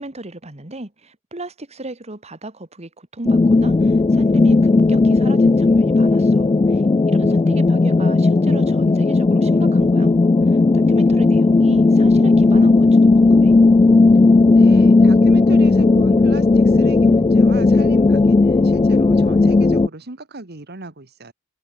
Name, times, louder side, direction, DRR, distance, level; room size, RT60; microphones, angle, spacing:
voice 1, 0.0-10.1 10.5-13.6, right 2 dB, 35° right, 2.3 m, -35 dB
sound 1, 3.3-19.9, left 3 dB, 25° left, 0.3 m, -14 dB
voice 2, 14.5-21.3, right 2 dB, 55° right, 1.9 m, -36 dB
head